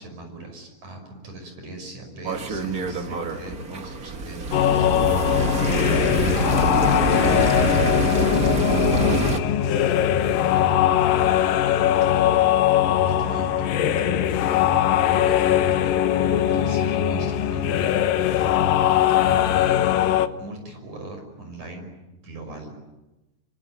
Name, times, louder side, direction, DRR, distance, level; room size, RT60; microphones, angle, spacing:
voice 1, 0.0-4.9 11.7-12.1 13.0-13.9 15.2-18.0 18.9-19.9 20.4-21.9 22.2-22.8, right 2 dB, 60° right, 4 dB, 7.0 m, -40 dB
sound 1, 2.2-9.4, right 3 dB, 40° right, 1.3 m, -25 dB
sound 2, 4.5-20.3, left 10 dB, 80° left, 2.8 m, -20 dB
voice 2, 9.6-11.2, equal, 10° left, 3 dB, 4.1 m, -40 dB
26.5 x 24.0 x 9.3 m, 1.0 s
omnidirectional pair, 3.9 m